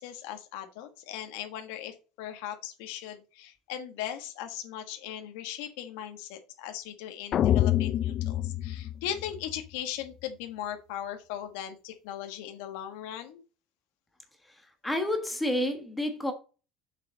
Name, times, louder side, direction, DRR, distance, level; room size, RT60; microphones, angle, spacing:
voice 1, 0.0-13.4, left 10 dB, 90° left, 1.4 m, -38 dB
sound 1, 7.3-9.6, left 12 dB, 40° left, 0.4 m, -26 dB
voice 2, 14.5-16.3, left 1 dB, 5° left, 1.3 m, -30 dB
6.7 x 6.5 x 3.9 m
cardioid pair, 150°, 0 cm